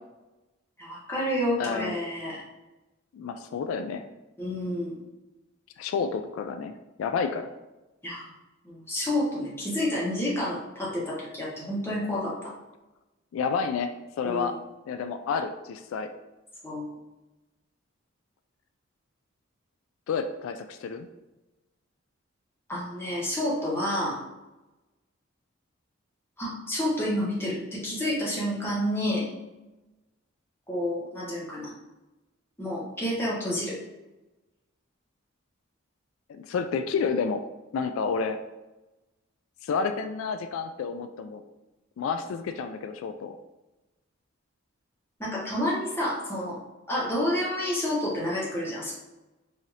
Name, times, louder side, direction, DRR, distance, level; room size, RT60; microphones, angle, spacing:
voice 1, 0.8-2.4 4.4-5.0 8.0-8.3 8.6-12.5 14.2-14.5 16.6-16.9 22.7-24.2 26.4-29.3 30.7-31.7 32.6-33.7 45.2-46.6 46.9-48.9, left 1 dB, 10° left, -6 dB, 1.1 m, -29 dB
voice 2, 1.6-2.0 3.1-4.0 5.8-6.7 7.0-7.5 13.3-13.9 14.2-14.6 14.9-16.1 20.1-21.1 36.3-37.4 37.7-38.4 39.6-41.4 42.0-43.4, left 5 dB, 85° left, 8 dB, 0.3 m, -30 dB
4.8 x 2.7 x 2.7 m, 1.0 s
head